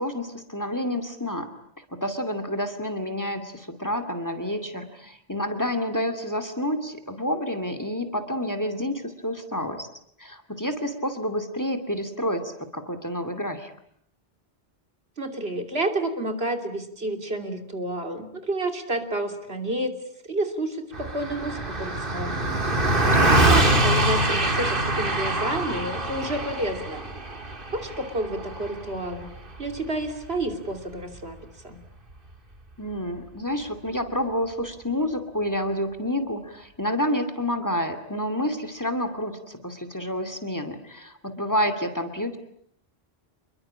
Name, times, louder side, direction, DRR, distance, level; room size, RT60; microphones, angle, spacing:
voice 1, 0.0-1.5 2.0-9.9 10.2-13.7 23.0-23.6 32.8-42.4, left 1 dB, 15° left, 10 dB, 2.5 m, -29 dB
voice 2, 15.2-19.9 20.2-22.4 23.2-27.0 27.7-29.3 29.6-31.4 31.6-31.8, right 1 dB, 75° right, 6 dB, 3.1 m, -30 dB
Car passing by, 20.9-30.5, right 1 dB, 55° right, 2.6 m, -24 dB
27.5 x 22.0 x 8.7 m, 0.69 s
omnidirectional pair, 1.1 m